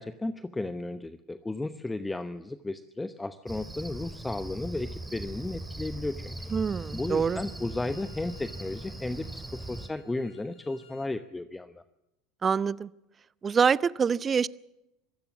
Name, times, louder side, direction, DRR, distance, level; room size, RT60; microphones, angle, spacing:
voice 1, 0.0-6.5 6.9-11.8, left 2 dB, 10° left, 13 dB, 0.9 m, -34 dB
Cricket, 3.5-9.9, right 2 dB, 10° right, 2.3 m, -40 dB
Bowed string instrument, 6.4-11.1, left 7 dB, 55° left, 5.1 m, -60 dB
voice 2, 6.5-7.4 12.4-12.9 13.4-14.5, right 6 dB, 30° right, 21 dB, 0.6 m, -25 dB
25.0 x 15.5 x 7.2 m, 0.90 s
hypercardioid pair, 75°, 0 cm